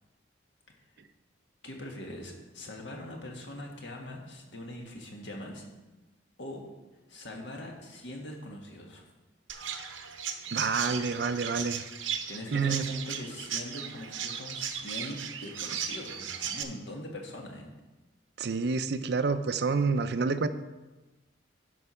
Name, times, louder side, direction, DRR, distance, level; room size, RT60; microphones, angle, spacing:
voice 1, 1.6-5.6 6.4-6.6 7.1-9.1 12.3-17.7, left 1 dB, 65° left, 1 dB, 1.7 m, -42 dB
Chirp tweet, 9.5-16.6, right 8 dB, 80° right, 0.8 m, -36 dB
voice 2, 10.5-11.9 12.5-12.8 18.4-20.5, right 4 dB, 55° right, 11 dB, 0.4 m, -28 dB
11.0 x 4.6 x 5.7 m, 1.1 s
head